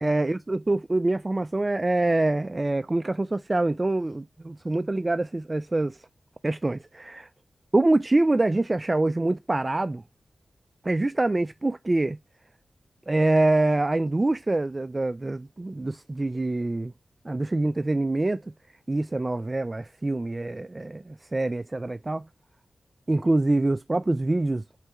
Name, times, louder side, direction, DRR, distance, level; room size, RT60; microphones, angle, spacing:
voice 1, 0.0-6.0 6.4-7.3 7.7-10.0 10.8-12.2 13.1-16.9 17.2-18.4 18.9-22.2 23.1-24.6, right 2 dB, 30° right, 0.3 m, -25 dB
4.6 x 3.2 x 3.0 m
cardioid pair, 55°, 0 cm